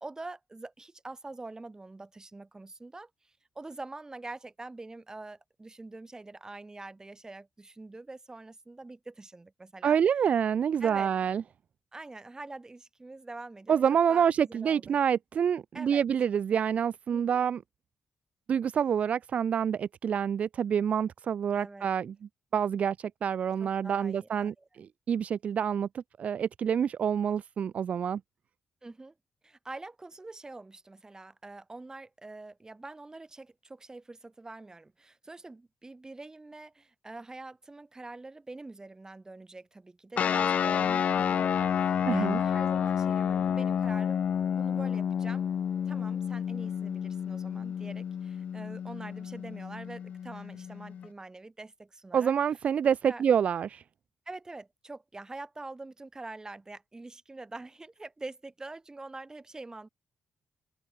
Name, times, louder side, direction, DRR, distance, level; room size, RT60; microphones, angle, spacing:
voice 1, 0.0-10.0 10.8-11.1 11.9-15.0 15.7-16.1 17.1-17.4 21.6-21.9 23.6-24.7 28.8-29.1 29.4-44.3 44.5-45.5 45.9-52.3 53.1-53.2 54.3-59.9, right 2 dB, 25° right, 5.4 m, -45 dB
voice 2, 9.8-11.4 13.7-17.6 18.5-22.1 22.5-28.2 42.1-42.4 52.1-53.8, right 8 dB, 60° right, 0.4 m, -27 dB
sound 1, 40.2-51.1, left 8 dB, 65° left, 2.2 m, -30 dB
supercardioid pair, 50°, 3 cm